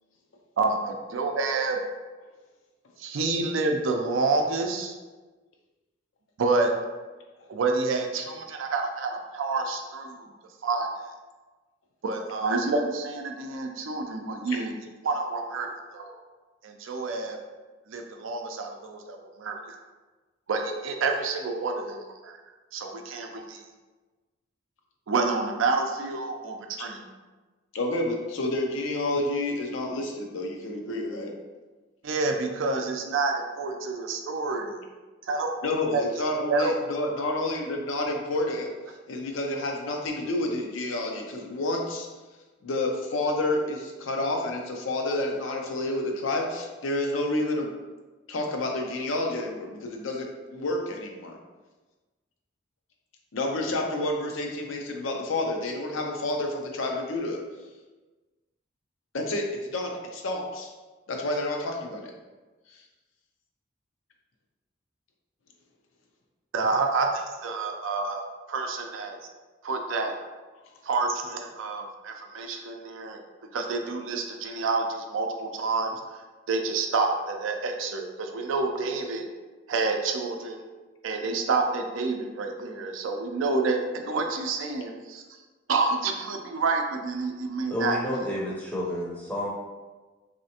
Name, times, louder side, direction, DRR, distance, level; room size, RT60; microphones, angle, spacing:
voice 1, 0.6-1.8 3.0-5.0 6.4-6.7 7.5-10.3 10.6-10.9 12.0-14.8 15.0-16.2 16.6-17.4 17.9-19.8 20.5-22.4 22.7-23.6 25.1-27.1 32.0-34.8 35.2-36.2 36.5-36.7 66.5-69.2 69.6-70.1 70.8-73.2 73.5-75.9 76.5-79.3 79.7-80.6 81.0-85.2 85.7-88.0, right 3 dB, 85° right, 3 dB, 0.4 m, -28 dB
voice 2, 27.7-31.3 35.6-38.7 39.1-42.1 42.6-47.7 48.3-51.4 53.3-57.4 59.1-60.7 61.1-62.1, left 2 dB, 85° left, 1 dB, 0.5 m, -29 dB
voice 3, 87.7-89.5, left 1 dB, 10° left, -5 dB, 0.5 m, -30 dB
3.2 x 2.7 x 2.8 m, 1.3 s
head